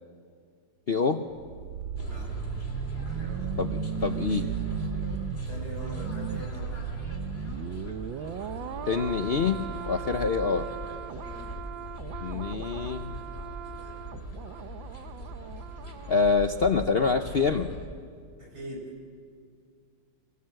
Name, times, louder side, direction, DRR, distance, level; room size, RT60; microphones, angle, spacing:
voice 1, 0.9-1.3 3.6-4.5 8.9-10.7 12.2-13.2 16.1-17.7, left 5 dB, 65° left, 8 dB, 0.5 m, -26 dB
sound 1, 1.3-16.2 16.5-16.7, right 8 dB, 80° right, 1.6 m, -36 dB
sound 2, 2.0-17.9, equal, 30° left, 2.9 m, -40 dB
voice 2, 3.0-3.5 5.5-6.7 11.2-11.5 18.4-18.8, right 1 dB, 50° right, 0 dB, 6.5 m, -42 dB
25.0 x 23.5 x 7.8 m, 2.1 s
omnidirectional pair, 2.1 m